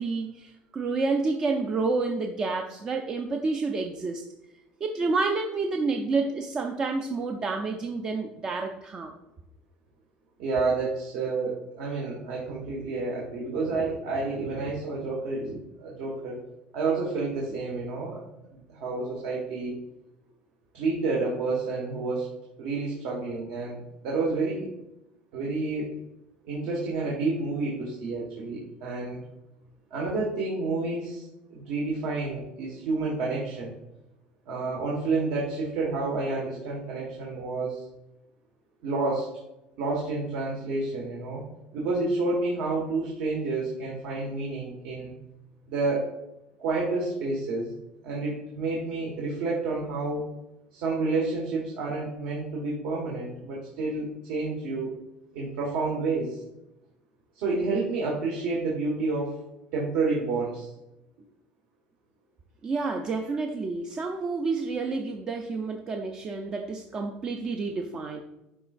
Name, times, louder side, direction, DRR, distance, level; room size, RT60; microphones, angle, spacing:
voice 1, 0.0-4.2 4.8-9.1 62.6-68.2, right 3 dB, 20° right, 4 dB, 0.4 m, -29 dB
voice 2, 10.4-16.4 16.7-18.2 18.5-19.7 20.7-22.3 22.6-24.7 25.3-25.9 26.4-29.2 29.9-31.3 31.5-33.7 34.4-37.8 38.8-39.3 39.8-41.4 41.7-45.1 45.7-46.1 46.6-47.7 48.0-50.2 50.7-54.9 55.3-56.4 57.3-59.4 59.7-60.7, right 3 dB, 70° right, -3 dB, 1.5 m, -29 dB
11.0 x 3.8 x 2.5 m, 0.93 s
cardioid pair, 180°, 4 cm